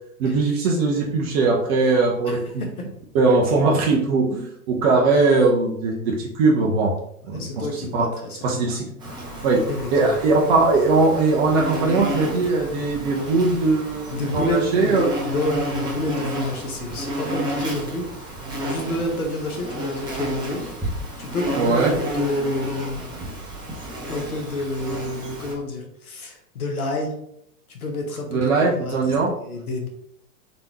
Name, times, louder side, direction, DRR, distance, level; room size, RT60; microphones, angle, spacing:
voice 1, 0.2-2.6 3.1-6.9 7.3-8.1 8.4-8.9 9.4-9.6 9.9-15.0 21.6-21.9 28.3-29.3, right 3 dB, 45° right, -1 dB, 0.9 m, -20 dB
voice 2, 2.3-2.7 7.3-8.4 9.7-10.2 14.1-18.0 18.6-23.0 24.1-27.1 27.7-29.0 29.3-29.9, left 1 dB, 75° left, 2 dB, 1.2 m, -29 dB
Insect, 9.0-25.5, right 1 dB, 10° right, 1.3 m, -31 dB
4.0 x 3.6 x 2.9 m, 0.73 s
figure-of-eight pair, 100°, 43 cm